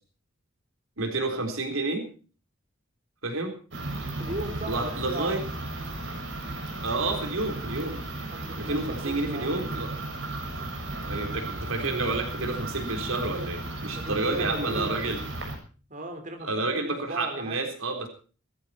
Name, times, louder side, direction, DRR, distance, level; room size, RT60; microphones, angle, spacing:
voice 1, 1.0-2.1 3.2-3.5 4.7-5.4 6.8-8.0 8.6-9.9 11.0-15.2 16.4-18.1, right 2 dB, 90° right, 6 dB, 3.9 m, -30 dB
sound 1, 3.7-15.6, right 2 dB, 65° right, 6.5 m, -35 dB
voice 2, 4.2-5.3 8.1-9.6 13.9-15.1 15.9-17.6, right 1 dB, 40° right, 5 dB, 4.3 m, -37 dB
19.5 x 14.5 x 4.3 m, 0.38 s
head